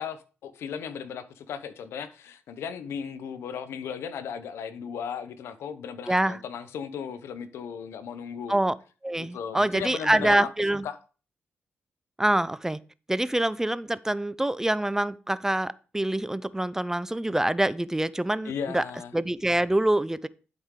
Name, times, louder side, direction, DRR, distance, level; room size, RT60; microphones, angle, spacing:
voice 1, 0.0-8.6 9.2-10.5 10.8-11.0 18.4-19.1, left 7 dB, 90° left, 0.8 m, -36 dB
voice 2, 6.1-6.4 8.5-8.8 9.0-10.9 12.2-12.8 13.1-18.8 19.1-20.3, right 1 dB, 10° right, 0.5 m, -25 dB
11.0 x 5.0 x 3.7 m
cardioid pair, 70°, 4 cm